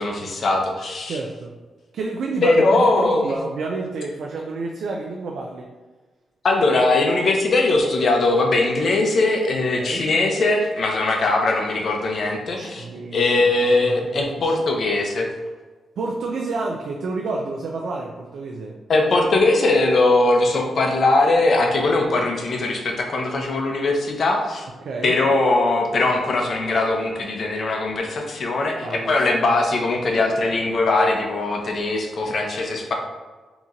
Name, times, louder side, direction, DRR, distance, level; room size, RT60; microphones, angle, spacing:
voice 1, 0.0-1.2 2.4-3.4 6.4-12.9 13.1-15.3 18.9-24.7 25.0-32.9, left 2 dB, 50° left, 2 dB, 0.7 m, -20 dB
voice 2, 1.1-1.6 1.9-5.7 9.8-10.1 12.6-14.6 16.0-18.7 24.8-25.2 28.8-29.2 29.5-29.6, right 3 dB, 70° right, 0 dB, 0.4 m, -30 dB
3.9 x 3.0 x 3.6 m, 1.3 s
cardioid pair, 125°, 0 cm